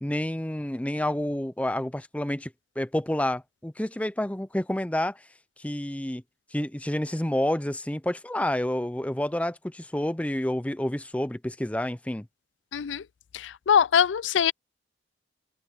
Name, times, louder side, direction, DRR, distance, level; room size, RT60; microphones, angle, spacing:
voice 1, 0.0-5.2 5.6-6.2 6.5-12.3, left 1 dB, 10° left, 0.6 m, -29 dB
voice 2, 12.7-13.0 13.3-14.5, left 8 dB, 90° left, 0.4 m, -23 dB
head